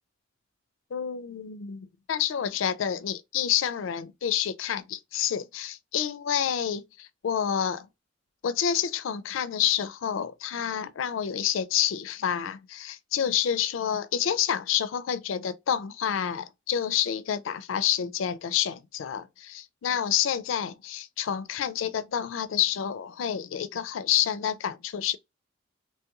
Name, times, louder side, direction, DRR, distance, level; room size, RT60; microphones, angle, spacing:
voice 1, 0.9-7.9 8.4-25.2, left 9 dB, 90° left, 0.4 m, -28 dB
3.0 x 2.9 x 2.3 m
head